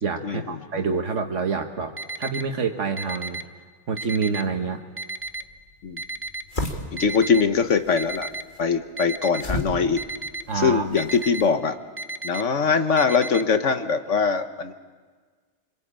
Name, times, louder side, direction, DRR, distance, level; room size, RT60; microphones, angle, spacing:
voice 1, 0.0-3.4 3.9-4.8 10.5-10.9, right 5 dB, 85° right, 4 dB, 1.6 m, -27 dB
Alarm, 2.0-2.4 3.0-3.4 4.0-4.4 5.0-5.4 6.0-6.4 7.0-7.4 8.0-8.4 9.0-9.4 10.0-10.4 11.0-11.4 12.0-12.4 13.0-13.4, right 2 dB, 15° right, 0.7 m, -32 dB
sound 1, 5.2-11.6, left 1 dB, 45° left, 2.5 m, -36 dB
voice 2, 6.9-8.3 8.6-10.0 10.5-11.8 12.2-14.7, left 5 dB, 85° left, 8 dB, 1.5 m, -22 dB
26.5 x 25.0 x 8.8 m, 1.5 s
omnidirectional pair, 1.2 m